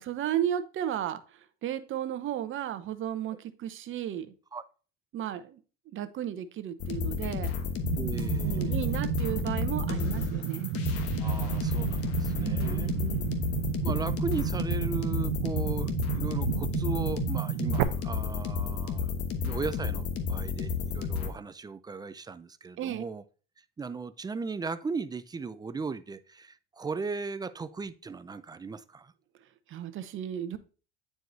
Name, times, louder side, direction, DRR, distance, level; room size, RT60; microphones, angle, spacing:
voice 1, 0.0-4.3 5.1-5.6 5.9-7.5 8.4-10.7 12.4-13.4 22.8-23.0 29.7-30.6, right 10 dB, 45° right, 0.8 m, -34 dB
sound 1, 6.8-21.3, left 6 dB, 55° left, 1.3 m, -32 dB
sound 2, 7.8-17.8, right 13 dB, 80° right, 0.6 m, -32 dB
voice 2, 7.9-8.8 11.2-12.9 13.8-19.1 19.4-23.2 23.8-29.1, right 4 dB, 15° right, 0.4 m, -37 dB
9.2 x 4.7 x 2.7 m
supercardioid pair, 90°, 29 cm